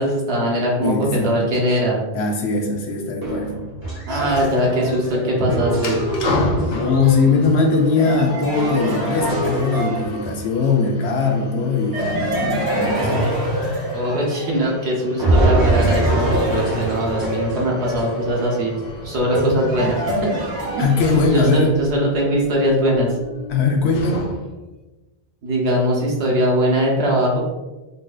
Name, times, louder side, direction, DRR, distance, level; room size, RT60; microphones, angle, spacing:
voice 1, 0.0-2.0 4.1-6.0 13.9-18.8 19.0-20.3 20.8-20.9 21.3-23.1 25.4-27.4, equal, 80° right, -3 dB, 1.1 m, -21 dB
voice 2, 0.8-1.4 2.1-3.5 6.7-13.3 20.8-21.7 23.5-24.2, left 4 dB, 85° left, 3 dB, 0.9 m, -20 dB
sound 1, 3.2-10.6 11.9-14.8 15.2-21.7, right 1 dB, 20° right, 1.0 m, -24 dB
sound 2, 5.7-24.7, left 2 dB, 50° left, 0.6 m, -33 dB
3.9 x 2.4 x 2.3 m, 1.1 s
omnidirectional pair, 1.1 m